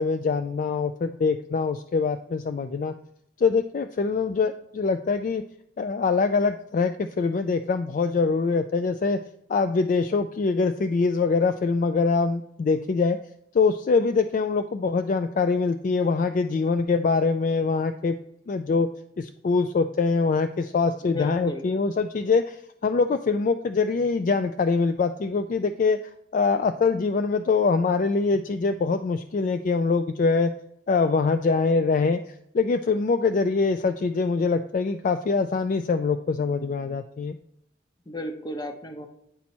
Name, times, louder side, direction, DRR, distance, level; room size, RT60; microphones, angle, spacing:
voice 1, 0.0-2.9 3.4-5.4 5.8-9.2 9.5-13.2 13.5-18.2 18.5-18.9 19.2-26.0 26.3-30.5 30.9-32.2 32.5-37.3, left 4 dB, 45° left, 9 dB, 0.3 m, -24 dB
voice 2, 21.0-21.6 38.1-39.1, left 1 dB, 20° left, 5 dB, 0.8 m, -34 dB
9.3 x 4.2 x 4.4 m, 0.76 s
head